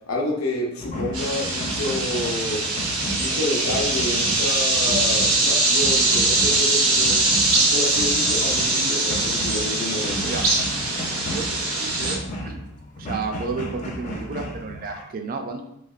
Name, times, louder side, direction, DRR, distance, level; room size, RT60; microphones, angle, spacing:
voice 1, 0.1-2.7 3.2-7.2 7.7-10.3, left 1 dB, 70° left, 0 dB, 0.7 m, -29 dB
sound 1, 0.8-15.0, equal, 35° left, 0.4 m, -34 dB
sound 2, 1.1-12.2, right 2 dB, 90° right, 0.7 m, -22 dB
voice 2, 11.2-12.6 13.0-15.7, right 4 dB, 40° right, 5 dB, 0.3 m, -32 dB
3.2 x 2.8 x 2.4 m, 0.79 s
head